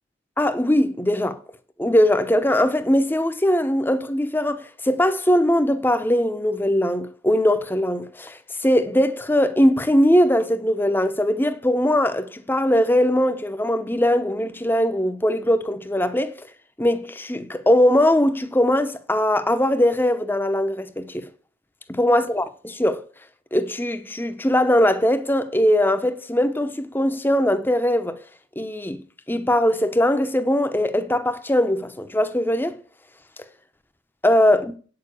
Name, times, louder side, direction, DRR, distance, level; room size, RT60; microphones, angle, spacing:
voice 1, 0.4-1.4 1.8-16.4 16.8-21.3 21.9-22.5 22.8-23.0 23.5-28.2 28.6-29.0 29.3-32.8 34.2-34.6, left 1 dB, 10° left, 0.7 m, -20 dB
8.8 x 6.8 x 8.3 m
head